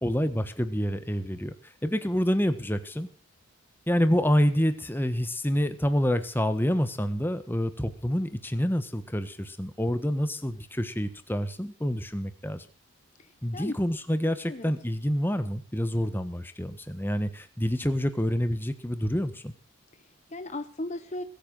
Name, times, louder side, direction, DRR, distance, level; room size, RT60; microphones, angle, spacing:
voice 1, 0.0-3.1 3.9-12.7 13.4-19.5, equal, 10° left, 10 dB, 1.3 m, -27 dB
voice 2, 13.2-13.8 14.5-14.7 19.9-21.2, left 2 dB, 30° left, 11 dB, 0.8 m, -37 dB
21.0 x 9.0 x 6.3 m, 0.38 s
head